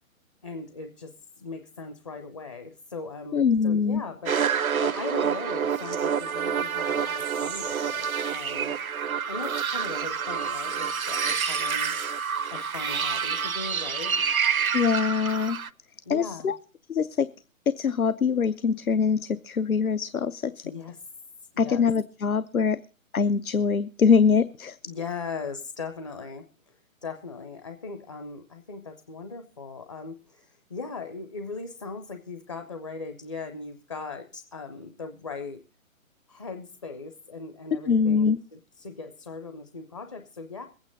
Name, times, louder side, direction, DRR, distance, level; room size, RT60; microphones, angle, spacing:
voice 1, 0.4-4.4 4.8-8.7 9.3-11.9 12.5-14.1 16.1-16.5 20.6-21.1 21.5-21.9 24.8-26.7 27.0-35.6 36.3-40.7, left 4 dB, 25° left, 7 dB, 0.5 m, -39 dB
voice 2, 3.3-4.0 14.7-15.6 16.1-16.6 16.9-17.3 17.7-20.6 21.6-22.8 23.1-24.8 37.9-38.4, left 6 dB, 85° left, 15 dB, 0.7 m, -23 dB
sound 1, 4.3-15.7, right 7 dB, 80° right, 0.7 m, -28 dB
22.0 x 8.9 x 3.9 m, 0.35 s
figure-of-eight pair, 130°, 41 cm